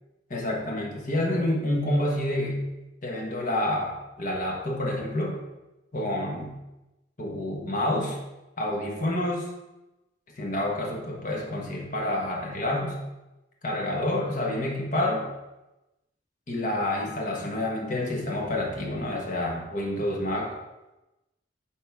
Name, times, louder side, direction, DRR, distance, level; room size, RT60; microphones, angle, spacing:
voice 1, 0.3-2.6 3.0-3.9 4.2-5.4 5.9-6.5 7.2-8.2 8.6-9.5 10.4-13.0 13.6-15.3 16.5-20.5, left 1 dB, 45° left, -1 dB, 1.4 m, -28 dB
9.0 x 5.4 x 3.6 m, 0.99 s
head